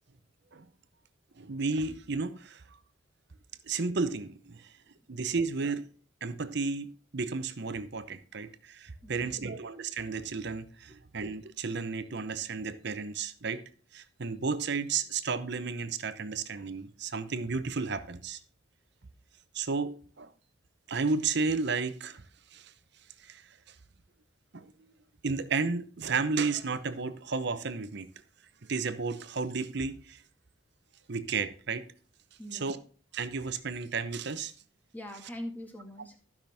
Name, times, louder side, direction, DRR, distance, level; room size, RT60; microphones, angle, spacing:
voice 1, 1.4-2.6 3.7-4.7 5.1-5.9 6.2-13.6 13.9-18.4 19.5-20.3 20.9-22.2 22.5-22.7 23.2-23.4 24.5-24.7 25.2-28.1 28.7-30.2 31.1-31.8 32.5-32.8 33.1-34.5, right 4 dB, 60° right, 0.8 m, -33 dB
voice 2, 9.0-9.5 10.9-11.0 32.4-32.8 34.9-36.2, left 1 dB, 10° left, 1.8 m, -43 dB
14.5 x 5.9 x 3.5 m
head